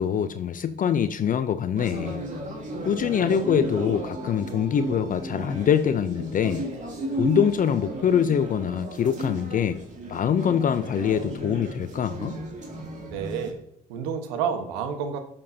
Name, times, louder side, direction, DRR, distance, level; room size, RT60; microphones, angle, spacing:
voice 1, 0.0-2.2 2.8-6.7 7.2-9.8 10.1-12.4, left 8 dB, 45° left, 12 dB, 0.5 m, -24 dB
sound 1, 1.8-13.5, right 1 dB, 40° right, 2.7 m, -34 dB
voice 2, 13.1-13.6 13.9-15.2, right 7 dB, 85° right, 7 dB, 1.3 m, -29 dB
12.5 x 7.0 x 2.8 m, 0.78 s
hypercardioid pair, 60°, 19 cm